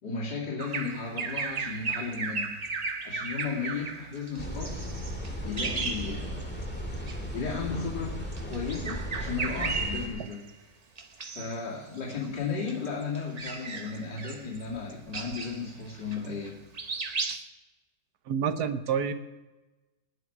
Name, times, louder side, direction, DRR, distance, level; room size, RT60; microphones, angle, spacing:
voice 1, 0.0-2.5 3.0-4.8 5.4-6.6 7.3-8.2 8.5-10.4 11.3-16.5, left 5 dB, 85° left, -8 dB, 3.3 m, -34 dB
Bird vocalization bird call bird song, 0.6-6.6 7.0-7.2 8.2-10.5 11.0-11.6 12.0-16.5 16.7-17.4, right 4 dB, 35° right, 0.6 m, -35 dB
sound 1, 4.4-10.1, equal, 5° left, 1.8 m, -36 dB
voice 2, 18.3-19.1, right 7 dB, 70° right, 10 dB, 1.4 m, -29 dB
19.0 x 8.8 x 4.8 m, 1.1 s
omnidirectional pair, 1.8 m